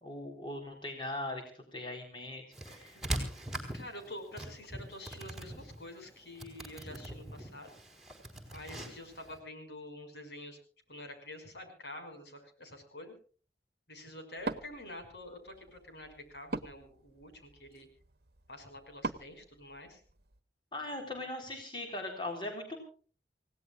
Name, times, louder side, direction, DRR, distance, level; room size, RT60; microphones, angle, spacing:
voice 1, 0.0-3.0 20.7-22.8, left 2 dB, 25° left, 2 dB, 3.9 m, -40 dB
sound 1, 2.5-9.4, right 1 dB, ahead, 4.1 m, -42 dB
voice 2, 3.7-7.7 8.5-10.6 10.9-13.1 13.9-17.9 18.5-20.0, left 1 dB, 75° left, 5 dB, 5.7 m, -47 dB
Wood, 14.4-20.4, right 3 dB, 65° right, 1.1 m, -44 dB
28.5 x 17.5 x 2.5 m, 0.41 s
head